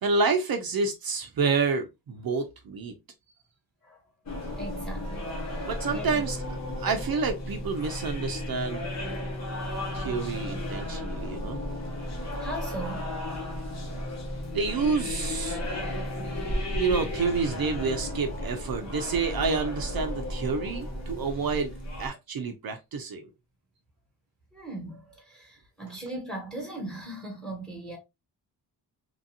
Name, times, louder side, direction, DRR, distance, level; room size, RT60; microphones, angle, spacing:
voice 1, 0.0-2.9 5.6-6.4 6.8-8.9 9.9-11.6 14.5-15.7 16.7-21.7 22.0-23.3, right 4 dB, 60° right, 0.6 m, -28 dB
sound 1, 4.3-22.1, left 1 dB, 40° left, 1.0 m, -34 dB
voice 2, 4.6-6.2 12.4-13.5 24.5-28.0, right 1 dB, ahead, 1.3 m, -39 dB
3.0 x 2.6 x 2.7 m
wide cardioid pair, 130°, 41 cm